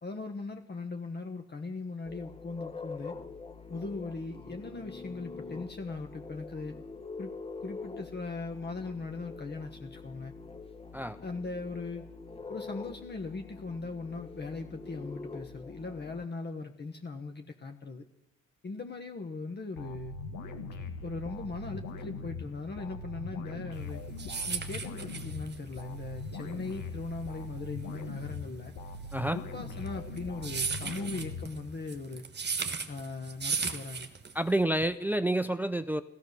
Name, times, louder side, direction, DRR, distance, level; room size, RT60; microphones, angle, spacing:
voice 1, 0.0-3.2 3.7-6.8 7.2-7.3 7.6-10.3 11.2-12.1 12.5-18.0 18.6-20.1 21.0-24.0 24.5-28.7 29.3-32.2 32.9-34.1, left 3 dB, 35° left, 5 dB, 1.4 m, -39 dB
sound 1, 2.1-16.3, left 4 dB, 20° left, 1.2 m, -45 dB
sound 2, 19.8-32.0, left 3 dB, 75° left, 2.1 m, -41 dB
sound 3, 23.8-34.6, right 5 dB, 35° right, 1.5 m, -36 dB
voice 2, 34.3-36.0, right 1 dB, 5° right, 12 dB, 0.6 m, -28 dB
14.5 x 14.5 x 6.8 m, 0.84 s
cardioid pair, 90°, 30 cm